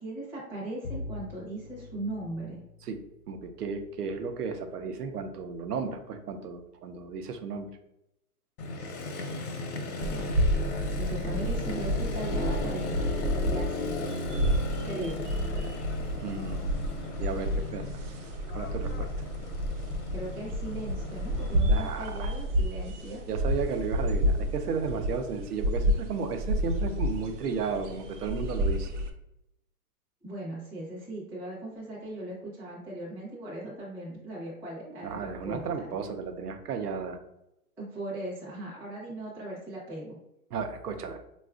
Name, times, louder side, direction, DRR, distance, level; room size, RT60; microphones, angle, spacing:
voice 1, 0.0-2.6 9.8-10.3 10.9-13.0 13.5-13.9 14.8-15.2 20.1-23.2 30.2-35.9 37.8-40.2, right 1 dB, 5° right, -8 dB, 0.5 m, -38 dB
Bowed string instrument, 0.8-3.9, left 2 dB, 50° left, 0.5 m, -43 dB
voice 2, 3.3-7.7 16.2-16.7 17.2-17.9 18.5-19.1 21.7-22.3 23.3-28.9 35.0-37.2 40.5-41.2, right 5 dB, 90° right, 7 dB, 0.7 m, -34 dB
Motorcycle, 8.6-21.6, left 2 dB, 75° left, 0.9 m, -36 dB
sound 1, 10.0-29.1, equal, 55° right, 0.6 m, -30 dB
4.1 x 2.3 x 2.3 m, 0.84 s
hypercardioid pair, 140°, 45 cm